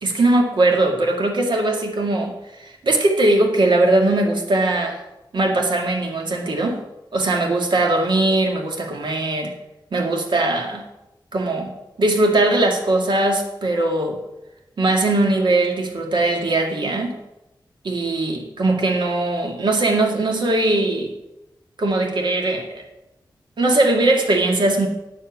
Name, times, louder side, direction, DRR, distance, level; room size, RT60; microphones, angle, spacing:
voice 1, 0.0-5.0 5.3-6.8 7.1-9.5 9.9-10.8 11.3-14.2 14.8-17.2 17.8-21.1 21.8-22.8 23.6-24.9, right 2 dB, 75° right, 2 dB, 2.1 m, -20 dB
9.0 x 7.7 x 8.1 m, 0.93 s
wide cardioid pair, 110°, 8 cm